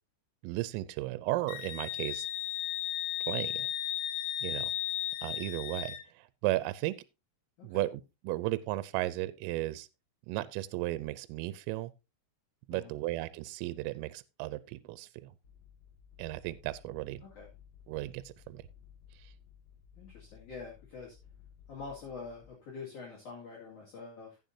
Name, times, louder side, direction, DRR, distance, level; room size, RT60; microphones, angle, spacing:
voice 1, 0.4-2.3 3.3-3.7 4.4-4.7 5.2-7.0 7.6-7.9 8.2-9.9 10.3-11.9 12.7-15.3 16.2-17.2 17.9-18.6, right 17 dB, 85° right, 3.2 m, -35 dB
Wind instrument woodwind instrument, 1.5-6.0, left 12 dB, 80° left, 3.0 m, -35 dB
sound 1, 15.4-22.5, left 7 dB, 25° left, 4.6 m, -57 dB
voice 2, 19.9-21.2 21.7-24.4, left 4 dB, 45° left, 3.0 m, -45 dB
15.5 x 7.4 x 2.7 m
omnidirectional pair, 5.9 m